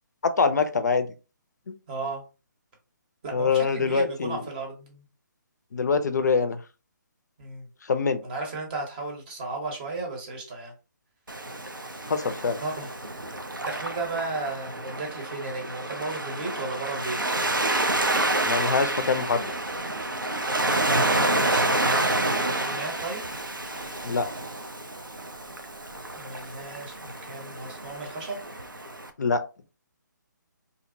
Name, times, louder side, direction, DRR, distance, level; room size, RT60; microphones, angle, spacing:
voice 1, 0.4-1.1 1.7-1.8 3.3-4.4 5.7-6.6 7.8-8.2 12.1-12.6 18.5-19.5 24.0-24.3 29.2-29.4, left 5 dB, 60° left, 10 dB, 0.3 m, -24 dB
voice 2, 1.9-2.3 3.2-5.1 7.4-7.7 8.2-10.7 12.6-13.0 13.6-17.2 21.1-23.2 26.2-28.4, right 3 dB, 25° right, 1 dB, 0.8 m, -35 dB
Waves surf, 11.3-29.1, right 2 dB, 85° right, 0.5 m, -29 dB
2.5 x 2.1 x 2.6 m, 0.32 s
figure-of-eight pair, 140°, 10 cm